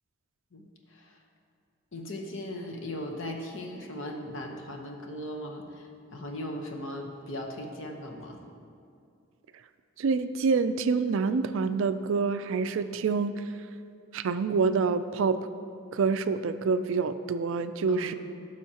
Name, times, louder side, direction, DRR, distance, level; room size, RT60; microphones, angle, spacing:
voice 1, 0.5-1.2 1.9-8.4 17.9-18.2, left 1 dB, 60° left, 1 dB, 0.9 m, -38 dB
voice 2, 10.0-13.4 14.1-15.4 15.9-18.1, right 5 dB, 60° right, 11 dB, 0.3 m, -27 dB
14.5 x 6.3 x 2.9 m, 2.4 s
head